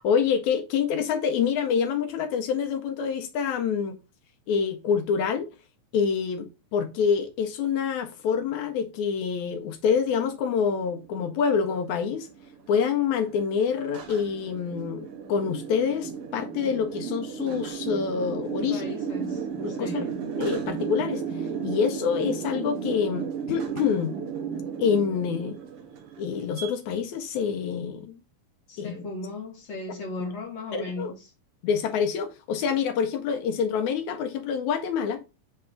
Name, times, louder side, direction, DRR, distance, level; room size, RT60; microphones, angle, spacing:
voice 1, 0.0-4.0 4.5-5.5 5.9-12.3 12.7-18.8 19.6-20.0 20.4-21.2 21.6-24.2 24.8-25.5 26.2-28.2 28.8-29.0 30.7-31.1 31.6-35.2, left 6 dB, 75° left, 2.0 m, -26 dB
sound 1, 10.3-26.7, right 6 dB, 65° right, 1.5 m, -34 dB
voice 2, 18.6-20.1 28.7-31.1, left 2 dB, 60° left, 2.6 m, -36 dB
7.9 x 3.3 x 3.6 m
omnidirectional pair, 3.6 m